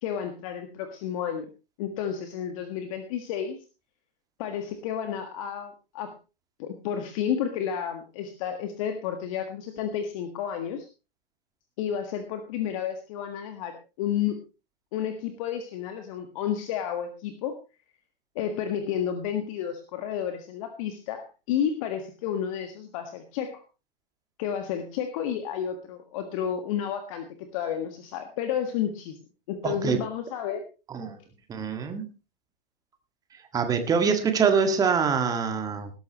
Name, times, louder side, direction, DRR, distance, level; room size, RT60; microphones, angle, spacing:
voice 1, 0.0-1.5 1.8-3.6 4.4-6.1 6.6-10.9 11.8-14.4 14.9-17.6 18.3-23.6 24.4-27.3 27.5-29.2 29.5-30.6, left 9 dB, 35° left, 7 dB, 1.7 m, -31 dB
voice 2, 29.6-30.0 30.9-31.2 31.5-32.1 33.5-35.9, right 6 dB, 10° right, 7 dB, 1.8 m, -24 dB
19.0 x 12.0 x 3.0 m, 0.31 s
figure-of-eight pair, 125°, 29 cm